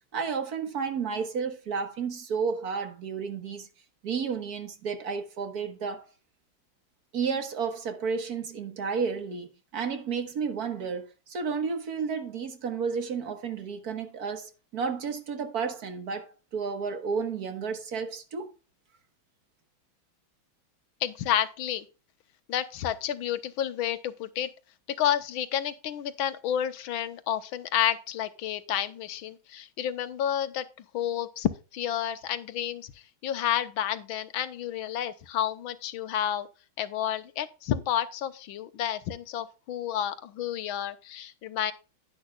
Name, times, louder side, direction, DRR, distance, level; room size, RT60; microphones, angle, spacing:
voice 1, 0.1-3.7 4.0-6.0 7.1-9.5 9.7-18.5, right 5 dB, 50° right, 1.7 m, -32 dB
voice 2, 21.0-21.8 22.5-24.5 24.9-30.7 30.9-32.9 33.2-36.5 36.8-41.7, left 10 dB, 75° left, 1.6 m, -30 dB
10.5 x 10.0 x 2.3 m
omnidirectional pair, 2.3 m